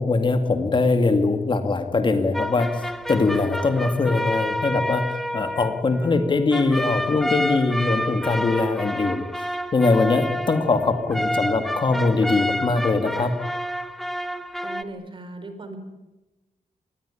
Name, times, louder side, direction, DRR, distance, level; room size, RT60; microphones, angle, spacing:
voice 1, 0.0-5.0 5.3-13.3, left 3 dB, 35° left, 7 dB, 2.1 m, -22 dB
sound 1, 2.3-14.8, equal, ahead, 1.1 m, -29 dB
voice 2, 14.6-15.8, right 2 dB, 35° right, 8 dB, 4.4 m, -38 dB
25.5 x 20.5 x 10.0 m, 1.1 s
wide cardioid pair, 150°, 14 cm